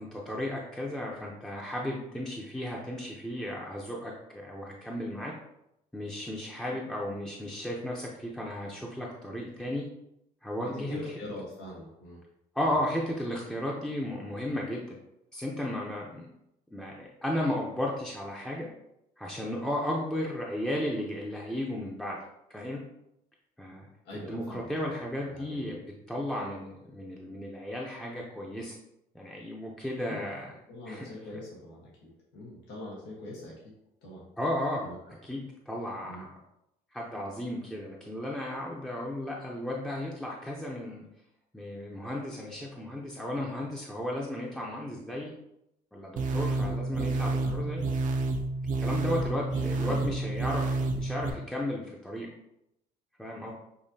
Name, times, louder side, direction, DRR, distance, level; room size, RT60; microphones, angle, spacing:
voice 1, 0.0-5.3 5.9-9.8 10.4-11.0 12.5-15.0 15.3-16.3 16.7-18.7 19.2-22.2 22.5-22.8 23.6-23.9 24.1-25.8 26.1-28.7 29.1-30.6 30.9-31.1 34.4-34.8 35.2-36.3 36.9-41.1 41.5-45.3 45.9-47.8 48.8-52.3 53.2-53.5, left 1 dB, 5° left, -3 dB, 0.7 m, -34 dB
voice 2, 10.7-12.2 12.6-12.8 23.7-23.8 24.0-25.0 25.3-25.7 30.0-30.2 30.7-33.7 34.0-34.2 34.8-35.0 36.0-36.2 46.6-46.8 47.4-47.7 49.5-50.1, left 1 dB, 85° left, -5 dB, 1.4 m, -43 dB
sound 1, 46.2-51.3, right 2 dB, 50° right, 0.6 m, -29 dB
7.0 x 2.8 x 2.7 m, 0.82 s
cardioid pair, 110°, 17 cm